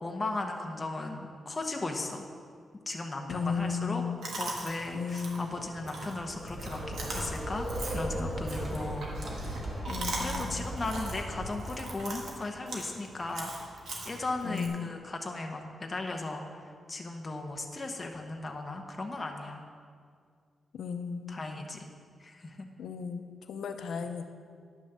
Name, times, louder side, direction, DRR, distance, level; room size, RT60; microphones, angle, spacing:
voice 1, 0.0-2.3 2.9-4.0 4.4-7.7 7.9-9.6 10.0-13.5 14.0-19.6 21.3-21.9 22.2-22.7, left 2 dB, 20° left, 2 dB, 0.9 m, -37 dB
voice 2, 3.3-4.3 4.9-5.6 9.9-10.6 14.4-14.9 20.7-21.4 22.8-24.3, left 6 dB, 90° left, 7 dB, 0.6 m, -35 dB
Chewing mastication, 4.2-14.7, right 2 dB, 70° right, 1.7 m, -40 dB
sound 1, 6.2-12.1, equal, 20° right, 1.4 m, -37 dB
10.0 x 6.3 x 6.7 m, 2.1 s
wide cardioid pair, 170°, 0 cm